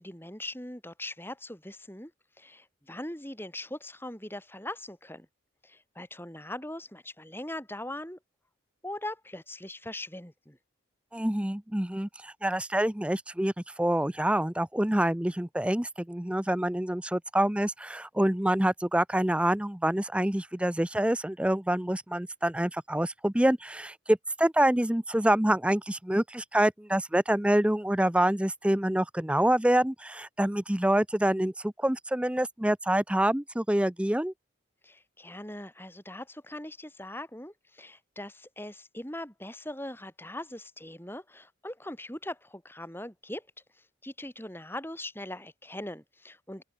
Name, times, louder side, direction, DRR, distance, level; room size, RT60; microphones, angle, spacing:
voice 1, 0.0-2.1 2.4-5.3 5.6-8.2 8.8-10.6 34.8-43.5 44.0-46.6, left 1 dB, 10° left, 7.9 m, -41 dB
voice 2, 11.1-13.5 13.8-34.3, right 1 dB, 5° right, 0.5 m, -26 dB
open air
head